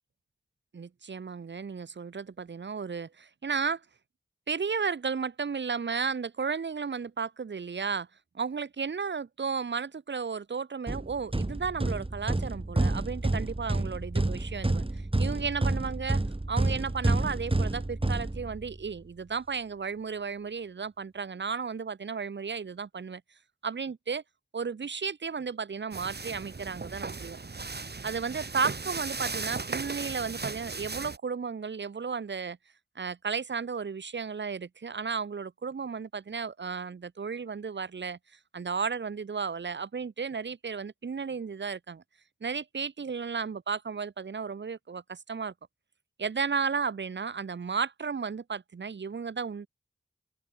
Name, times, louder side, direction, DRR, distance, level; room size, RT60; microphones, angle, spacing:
voice 1, 0.7-3.8 4.5-8.1 8.3-16.2 16.5-23.2 23.6-24.2 24.5-27.4 28.0-32.6 33.0-38.2 38.5-42.0 42.4-45.5 46.2-49.7, right 5 dB, 85° right, 1.9 m, -34 dB
sound 1, 10.9-18.9, right 2 dB, 30° right, 4.4 m, -29 dB
sound 2, 25.9-31.2, right 4 dB, 65° right, 7.2 m, -37 dB
open air
cardioid pair, 45°, 18 cm